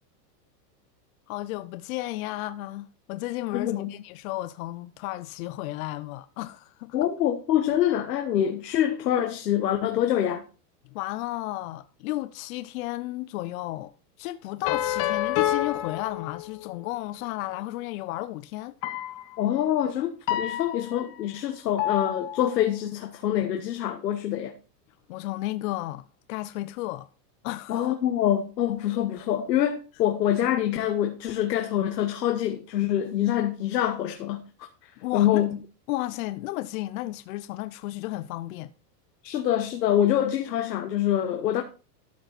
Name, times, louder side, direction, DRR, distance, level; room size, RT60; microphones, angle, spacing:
voice 1, 1.3-7.0 10.8-13.9 14.2-18.7 25.1-27.1 27.4-27.9 35.0-35.4 35.9-38.7, left 17 dB, 60° left, 0.8 m, -33 dB
voice 2, 3.5-3.9 6.9-10.4 19.4-24.5 27.7-34.4 35.1-35.5 39.2-41.6, left 11 dB, 90° left, 1.6 m, -25 dB
sound 1, 14.6-16.8 18.8-19.3 20.3-21.2 21.8-22.6, left 13 dB, 40° left, 1.3 m, -28 dB
13.0 x 6.6 x 4.3 m
supercardioid pair, 135°, 48 cm